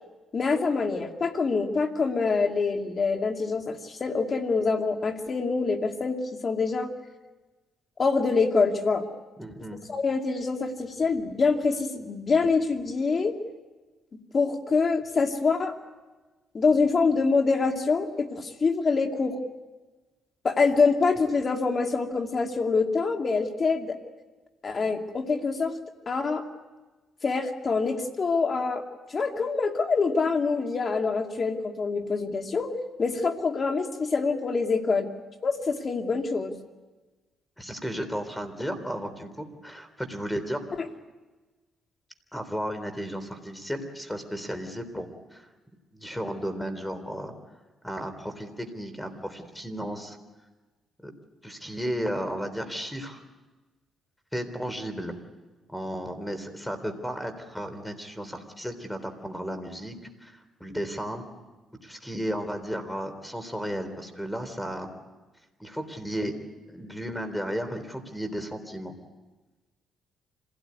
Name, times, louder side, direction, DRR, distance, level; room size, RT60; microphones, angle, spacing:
voice 1, 0.3-6.2 6.4-6.9 8.0-9.0 9.9-13.3 14.3-15.7 16.5-19.4 20.4-24.0 24.6-25.8 26.1-26.4 27.2-28.8 29.1-35.1 35.4-36.5, left 4 dB, 40° left, 4 dB, 2.5 m, -25 dB
voice 2, 9.4-9.8 37.6-40.6 42.3-45.5 45.9-47.3 47.8-50.2 51.0-51.1 51.4-53.2 54.3-55.2 55.7-59.9 60.2-61.2 61.8-65.0 65.6-66.3 66.7-69.0, equal, 5° left, 9 dB, 3.6 m, -34 dB
26.5 x 17.5 x 9.7 m, 1.2 s
cardioid pair, 90°, 0 cm